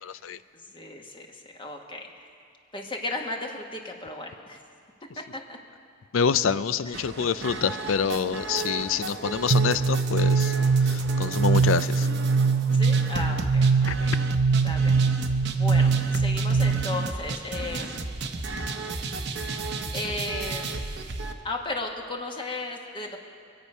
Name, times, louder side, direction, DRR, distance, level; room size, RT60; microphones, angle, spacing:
voice 1, 0.0-0.4 6.1-10.5 10.8-12.1 13.8-13.9, left 6 dB, 80° left, 15 dB, 0.5 m, -26 dB
voice 2, 0.7-2.1 2.7-4.6 5.2-5.6 6.8-7.0 12.7-14.1 14.6-15.1 15.5-18.0 19.9-20.8 21.4-23.2, left 2 dB, 25° left, 1 dB, 1.3 m, -35 dB
sound 1, 6.9-21.3, right 3 dB, 60° right, 0.9 m, -34 dB
sound 2, 9.5-17.1, right 4 dB, 90° right, 0.4 m, -22 dB
24.5 x 8.3 x 5.5 m, 2.3 s
head